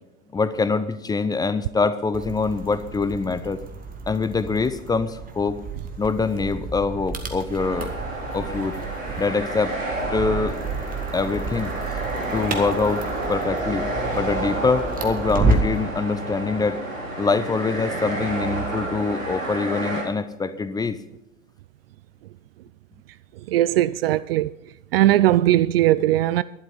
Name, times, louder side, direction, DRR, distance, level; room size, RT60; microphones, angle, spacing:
voice 1, 0.3-3.6 4.1-5.6 6.0-7.9 8.3-8.7 9.2-9.8 10.1-10.6 11.1-11.7 12.3-13.0 13.3-16.8 17.2-21.0, left 4 dB, 10° left, 0.6 m, -24 dB
sound 1, 2.1-15.9, right 3 dB, 20° right, 1.8 m, -30 dB
sound 2, 7.6-20.0, right 2 dB, 80° right, 3.4 m, -30 dB
voice 2, 23.4-24.5 24.9-26.4, right 14 dB, 50° right, 0.4 m, -19 dB
12.0 x 11.5 x 5.4 m
figure-of-eight pair, 90°, 39 cm